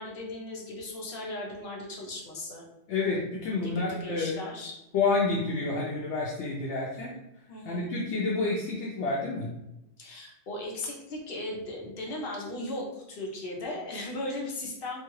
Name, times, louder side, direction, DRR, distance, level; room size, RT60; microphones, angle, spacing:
voice 1, 0.0-2.6 3.6-4.7 7.5-7.9 10.0-15.0, left 1 dB, 55° left, -1 dB, 0.9 m, -37 dB
voice 2, 2.9-4.4 4.9-7.1 7.6-9.5, left 3 dB, 80° left, -4 dB, 0.9 m, -29 dB
3.0 x 2.3 x 3.1 m, 0.90 s
omnidirectional pair, 1.2 m